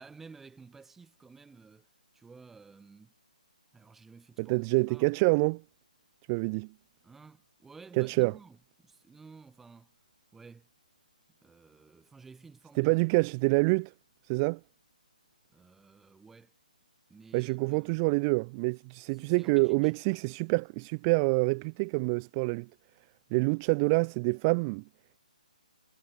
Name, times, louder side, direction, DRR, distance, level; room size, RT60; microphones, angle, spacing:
voice 1, 0.0-3.1 3.7-5.1 7.0-10.0 10.3-10.7 11.4-12.9 15.5-16.5 17.1-18.0 19.1-19.9, right 4 dB, 5° right, 6.5 m, -53 dB
voice 2, 4.4-5.6 6.3-6.7 8.0-8.3 12.8-13.9 14.2-14.6 17.3-22.7 23.3-24.8, right 30 dB, 25° right, 0.6 m, -27 dB
figure-of-eight pair, 145°, 5 cm